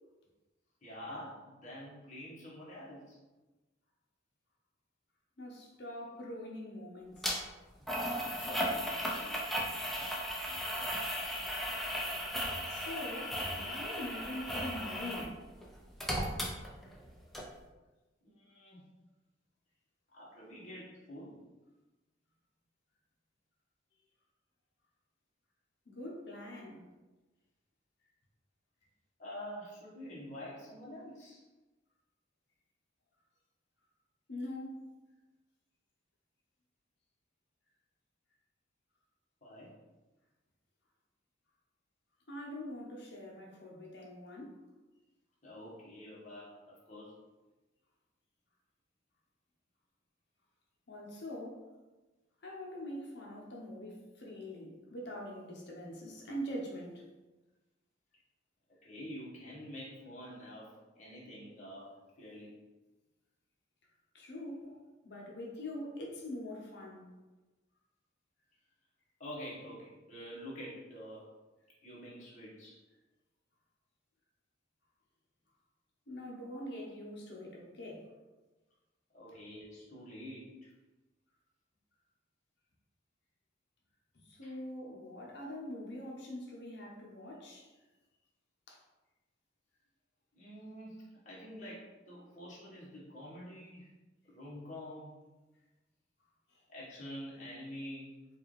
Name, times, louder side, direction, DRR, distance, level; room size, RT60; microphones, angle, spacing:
voice 1, 0.8-3.2 7.8-9.4 18.2-18.9 20.1-21.4 29.2-31.4 39.4-39.7 45.4-47.2 58.8-62.6 64.6-64.7 69.2-71.3 71.8-72.8 76.5-76.6 79.1-80.7 84.4-84.5 90.3-93.9 94.2-95.1 96.7-98.2, equal, 40° left, -7 dB, 1.4 m, -47 dB
voice 2, 5.4-7.3 12.7-15.4 25.9-26.8 34.3-34.8 42.3-44.6 50.9-51.6 52.4-57.1 64.1-64.7 65.0-67.1 76.1-78.1 84.1-87.7 88.7-88.8 96.5-96.6, left 1 dB, 60° left, -2 dB, 0.9 m, -43 dB
sound 1, 7.2-7.3 7.9-15.3 15.6-17.1 17.3-17.4, equal, ahead, 0.5 m, -36 dB
4.5 x 2.5 x 3.2 m, 1.1 s
head